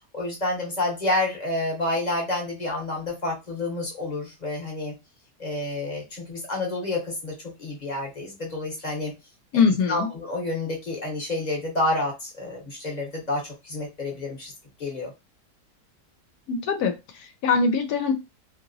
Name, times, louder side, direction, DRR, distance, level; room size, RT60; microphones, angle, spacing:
voice 1, 0.1-4.9 5.4-9.1 9.5-9.6 9.9-14.5 14.8-15.1, left 2 dB, 35° left, -1 dB, 0.8 m, -29 dB
voice 2, 9.5-10.1 16.5-18.1, left 5 dB, 70° left, 7 dB, 1.0 m, -23 dB
2.8 x 2.8 x 2.6 m, 0.25 s
omnidirectional pair, 1.8 m